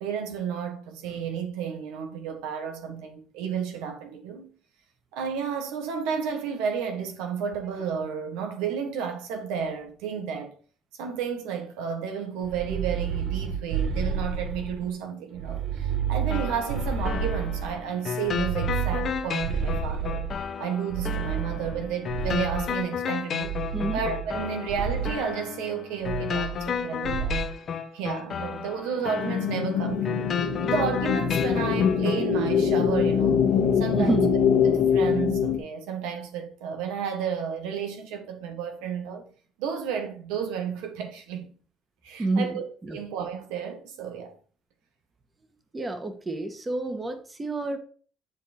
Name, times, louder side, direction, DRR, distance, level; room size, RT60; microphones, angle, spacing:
voice 1, 0.0-4.5 5.1-10.5 11.0-20.2 20.6-23.5 23.9-27.4 27.9-30.3 30.6-33.4 33.8-34.2 34.6-39.2 39.6-41.5 42.0-42.6 42.9-44.3, right 7 dB, 85° right, 1.3 m, -32 dB
sound 1, 12.4-14.9 15.3-17.8 18.2-20.4 20.9-22.8 23.4-24.4 24.7-25.2 26.0-26.8 27.0-27.5, right 7 dB, 65° right, 1.2 m, -30 dB
sound 2, 16.3-32.3, left 7 dB, 50° left, 0.9 m, -33 dB
sound 3, 29.2-35.6, left 7 dB, 80° left, 1.5 m, -23 dB
voice 2, 33.9-34.3 42.2-43.0 45.7-47.8, right 2 dB, 20° right, 1.6 m, -28 dB
10.5 x 3.7 x 4.4 m
supercardioid pair, 85°, 0 cm